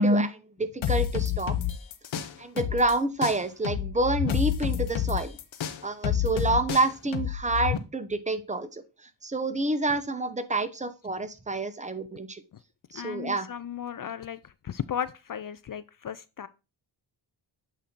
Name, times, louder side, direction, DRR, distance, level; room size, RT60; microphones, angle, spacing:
voice 1, 0.0-1.5 2.4-5.3 5.8-8.8 9.2-12.4 12.9-13.5, right 2 dB, 15° right, 0.8 m, -28 dB
sound 1, 0.8-2.9 3.2-7.8, left 10 dB, 80° left, 0.8 m, -29 dB
voice 2, 12.9-16.5, left 9 dB, 50° left, 0.5 m, -35 dB
8.3 x 2.8 x 5.1 m
cardioid pair, 75°, 45 cm